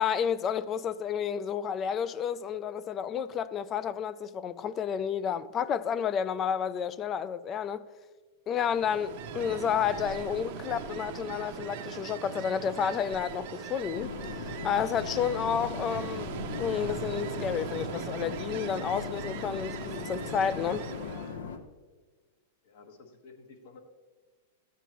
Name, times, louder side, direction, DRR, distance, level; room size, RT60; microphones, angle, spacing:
voice 1, 0.0-7.9 8.5-14.1 14.4-16.3 16.6-20.9, left 8 dB, 25° left, 0.3 m, -31 dB
Ocean, 8.6-21.4, right 8 dB, 55° right, 0.7 m, -40 dB
sound 1, 13.9-21.6, left 5 dB, 80° left, 0.8 m, -39 dB
voice 2, 22.6-23.8, left 4 dB, 60° left, 1.4 m, -52 dB
13.0 x 8.2 x 3.0 m
supercardioid pair, 145°, 0 cm